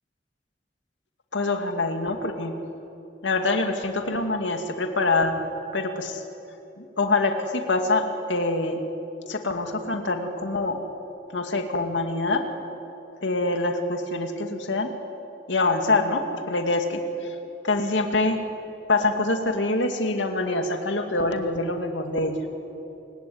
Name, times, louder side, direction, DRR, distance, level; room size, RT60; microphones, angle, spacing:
voice 1, 1.3-2.5 3.2-5.4 5.7-6.2 6.8-8.8 9.3-10.8 11.3-12.4 13.2-14.9 15.5-17.4 17.6-18.4 18.9-22.4, left 2 dB, 80° left, 5 dB, 2.3 m, -25 dB
28.0 x 16.5 x 9.6 m, 3.0 s
head